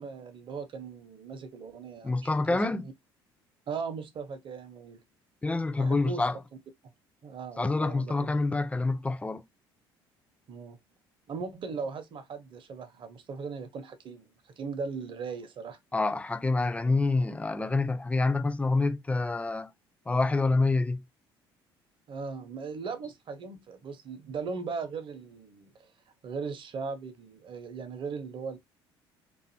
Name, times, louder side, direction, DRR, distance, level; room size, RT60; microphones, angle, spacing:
voice 1, 0.0-2.9 3.7-5.0 5.8-6.3 7.2-8.3 10.5-10.8 11.3-15.8 22.1-25.9 26.2-28.6, right 5 dB, 40° right, 0.7 m, -38 dB
voice 2, 2.0-2.8 5.4-6.4 7.6-9.4 15.9-19.7 20.1-21.0, left 3 dB, 10° left, 0.3 m, -27 dB
2.6 x 2.4 x 2.6 m
figure-of-eight pair, 55°, 12 cm